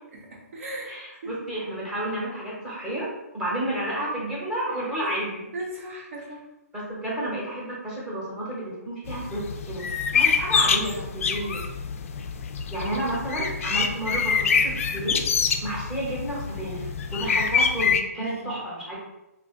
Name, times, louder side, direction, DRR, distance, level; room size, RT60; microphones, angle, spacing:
voice 1, 0.3-0.9 1.2-1.3 5.0-5.2 5.5-6.4 12.7-12.9 18.4-18.6, right 1 dB, 55° right, -1 dB, 1.0 m, -36 dB
voice 2, 0.8-3.1 3.3-5.5 6.7-9.8 10.1-11.7 12.7-15.2 15.6-16.9 17.1-18.9, right 1 dB, 5° right, -7 dB, 0.9 m, -31 dB
sound 1, 9.1-18.0, left 6 dB, 55° left, 0.3 m, -26 dB
2.5 x 2.4 x 3.6 m, 0.96 s
hypercardioid pair, 165°, 9 cm